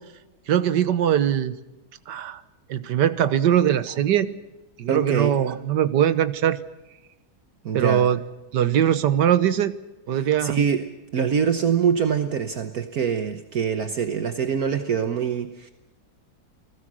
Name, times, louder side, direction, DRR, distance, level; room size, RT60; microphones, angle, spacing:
voice 1, 0.5-1.6 2.1-2.4 2.7-4.4 4.8-6.6 7.7-8.2 8.5-9.7 10.1-10.6, right 10 dB, 90° right, 13 dB, 1.7 m, -21 dB
voice 2, 4.9-5.4 7.6-8.1 10.4-10.9 11.1-15.7, right 7 dB, 60° right, 8 dB, 1.6 m, -24 dB
29.5 x 20.5 x 6.3 m, 0.98 s
omnidirectional pair, 1.8 m